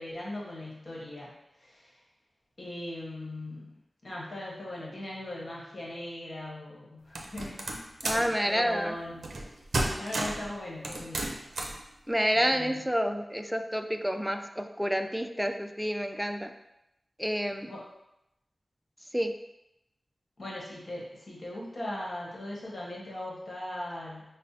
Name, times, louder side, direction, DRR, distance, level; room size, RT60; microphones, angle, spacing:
voice 1, 0.0-1.3 1.6-2.0 2.6-7.7 8.0-9.2 10.0-11.4 12.5-12.8 17.6-17.8 20.4-24.4, left 1 dB, 60° left, -4 dB, 1.1 m, -39 dB
sound 1, 7.1-8.3 9.2-9.5 9.7-10.5 10.8-11.8, right 2 dB, 85° right, 0.5 m, -32 dB
voice 2, 8.0-9.0 12.1-16.5 17.2-17.7 19.1-19.3, equal, ahead, 6 dB, 0.3 m, -29 dB
5.4 x 2.0 x 2.7 m, 0.87 s
wide cardioid pair, 60°, 0 cm